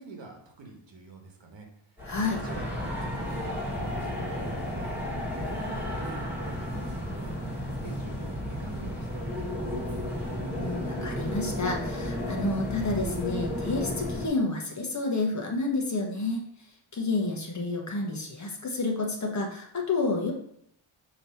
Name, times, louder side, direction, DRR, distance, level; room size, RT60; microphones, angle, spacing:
voice 1, 0.0-1.7 1.9-2.0 2.3-7.6 7.8-10.0, right 3 dB, 60° right, 2 dB, 1.5 m, -46 dB
sound 1, 2.0-14.3, left 1 dB, 5° right, 1.8 m, -33 dB
voice 2, 2.1-2.4 10.5-16.4 16.9-20.3, left 3 dB, 35° left, 0 dB, 1.2 m, -30 dB
6.5 x 3.1 x 5.7 m, 0.69 s
wide cardioid pair, 130°, 49 cm